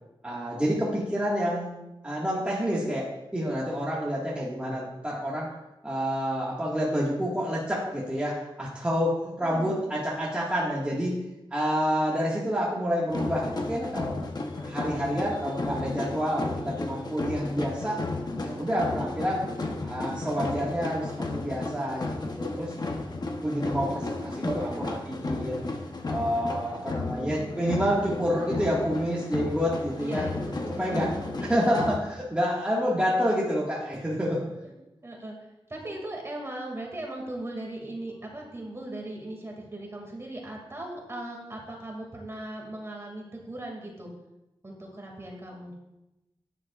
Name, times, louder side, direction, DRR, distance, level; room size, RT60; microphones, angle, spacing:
voice 1, 0.2-5.5 5.8-11.1 11.5-14.2 14.6-18.0 18.4-19.4 19.9-22.7 23.4-25.6 26.0-30.2 30.8-31.1 31.5-34.5, equal, 10° right, -6 dB, 1.8 m, -28 dB
voice 2, 9.4-9.8 24.1-24.9 26.8-27.5 30.0-31.9 35.0-35.4 35.7-44.1 44.6-45.7, right 1 dB, 30° right, 0 dB, 2.3 m, -39 dB
sound 1, 13.1-32.0, left 2 dB, 45° left, 1.0 m, -33 dB
12.0 x 9.9 x 2.5 m, 0.94 s
wide cardioid pair, 130°, 9 cm